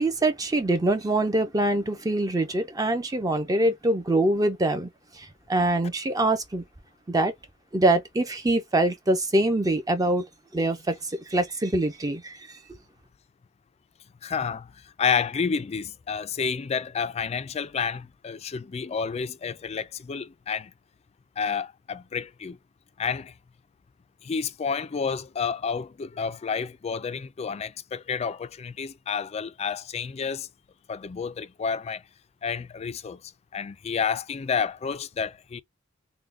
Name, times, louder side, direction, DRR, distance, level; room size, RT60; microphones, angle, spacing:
voice 1, 0.0-4.9 5.1-6.6 7.1-7.3 7.7-10.2 10.5-12.5, right 1 dB, 20° right, 0.5 m, -24 dB
voice 2, 14.2-20.7 21.4-22.6 23.0-23.3 24.2-30.5 30.9-32.0 32.4-33.2 33.5-35.6, left 6 dB, 35° left, 0.3 m, -30 dB
3.7 x 2.2 x 3.2 m
head